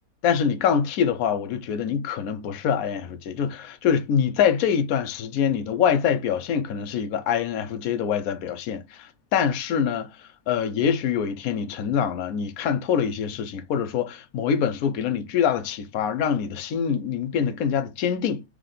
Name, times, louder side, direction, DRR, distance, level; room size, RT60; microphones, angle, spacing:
voice 1, 0.2-10.1 10.5-18.4, left 7 dB, 70° left, 1.1 m, -25 dB
3.5 x 3.2 x 3.9 m
omnidirectional pair, 1.6 m